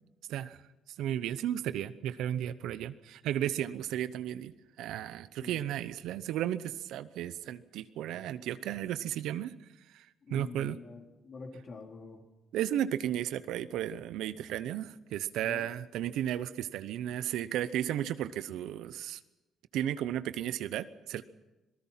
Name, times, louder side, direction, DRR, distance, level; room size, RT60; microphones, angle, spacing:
voice 1, 1.0-9.5 9.9-10.0 10.3-10.8 12.5-19.2 19.7-21.3, right 11 dB, 85° right, 14 dB, 0.8 m, -34 dB
voice 2, 10.3-12.2 15.4-15.7, left 4 dB, 50° left, 2 dB, 3.7 m, -46 dB
25.5 x 18.5 x 5.8 m, 1.0 s
cardioid pair, 90°, 0 cm